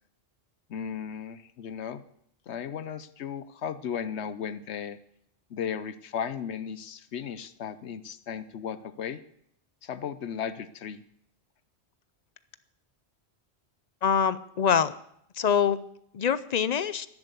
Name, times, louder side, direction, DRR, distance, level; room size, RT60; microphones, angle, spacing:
voice 1, 0.7-2.0 2.5-5.0 5.5-9.2 9.8-11.0, left 8 dB, 80° left, 14 dB, 1.0 m, -35 dB
voice 2, 14.0-14.9 15.4-15.8 16.1-17.1, left 7 dB, 45° left, 16 dB, 0.6 m, -24 dB
11.5 x 11.0 x 8.3 m, 0.71 s
omnidirectional pair, 1.1 m